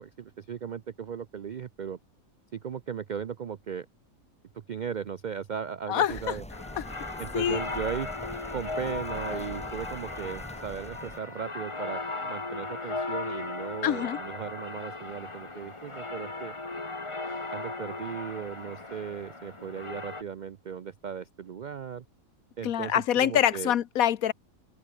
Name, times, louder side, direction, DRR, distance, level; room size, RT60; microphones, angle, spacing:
voice 1, 0.0-2.0 2.5-3.9 4.7-6.4 7.2-8.1 8.5-16.6 17.5-22.0 22.6-23.7, right 7 dB, 70° right, 0.4 m, -37 dB
voice 2, 5.9-6.4 6.8-6.9 7.3-7.6 13.8-14.2 22.6-24.3, left 10 dB, 75° left, 1.3 m, -25 dB
sound 1, 6.1-11.2, left 1 dB, 5° left, 1.1 m, -43 dB
sound 2, 6.5-20.2, left 3 dB, 20° left, 1.5 m, -37 dB
open air
omnidirectional pair, 1.5 m